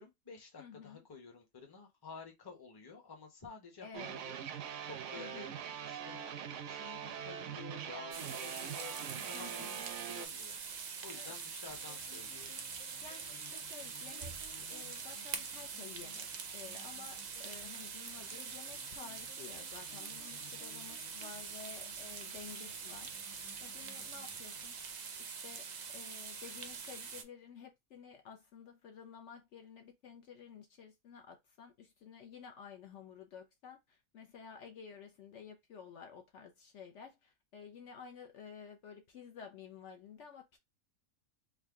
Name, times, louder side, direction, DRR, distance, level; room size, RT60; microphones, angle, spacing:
voice 1, 0.0-4.4 4.8-5.5 5.8-6.2 6.6-9.8 10.0-10.6 11.0-12.5, left 5 dB, 20° left, 0.7 m, -51 dB
voice 2, 0.6-1.0 3.8-4.2 5.1-5.5 9.3-9.8 11.1-11.3 13.0-16.3 16.5-24.8 25.2-40.6, left 7 dB, 65° left, 0.9 m, -52 dB
sound 1, 3.9-10.3, right 8 dB, 70° right, 0.8 m, -43 dB
sound 2, 8.1-27.2, right 6 dB, 90° right, 0.3 m, -44 dB
sound 3, 11.7-24.6, left 4 dB, 85° left, 1.4 m, -60 dB
3.7 x 2.2 x 3.5 m
omnidirectional pair, 1.5 m